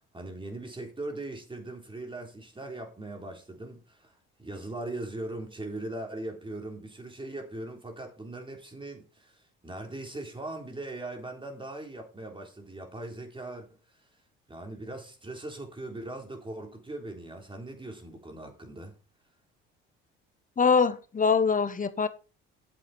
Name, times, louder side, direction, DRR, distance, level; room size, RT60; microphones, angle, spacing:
voice 1, 0.1-13.7 14.0-14.1 14.5-19.0, right 2 dB, 15° right, 3.5 m, -40 dB
voice 2, 20.6-22.1, left 5 dB, 30° left, 1.2 m, -23 dB
9.2 x 7.6 x 4.3 m
supercardioid pair, 75°, 29 cm